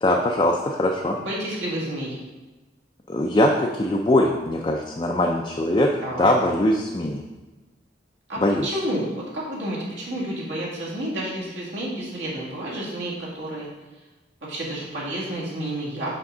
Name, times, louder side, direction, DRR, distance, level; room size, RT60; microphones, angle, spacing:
voice 1, 0.0-1.2 3.1-5.9 6.2-7.2 8.4-8.7, left 1 dB, 25° left, 1 dB, 0.4 m, -21 dB
voice 2, 1.2-2.2 6.0-6.3 8.3-9.1 9.3-13.7 14.4-16.1, right 1 dB, 75° right, -6 dB, 2.1 m, -30 dB
5.8 x 5.1 x 3.8 m, 1.2 s
head